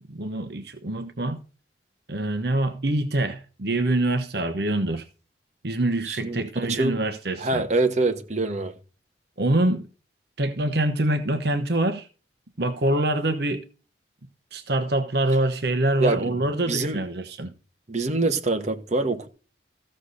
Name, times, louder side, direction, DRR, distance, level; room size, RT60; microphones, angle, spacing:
voice 1, 0.1-1.4 2.1-5.1 5.6-7.6 9.4-9.9 10.4-12.1 12.6-13.7 14.5-17.5, right 1 dB, 65° right, 1.1 m, -25 dB
voice 2, 6.1-7.0 7.4-8.7 16.0-16.4 16.7-17.0 17.9-19.3, right 3 dB, 40° right, 1.3 m, -25 dB
15.0 x 6.6 x 4.0 m
head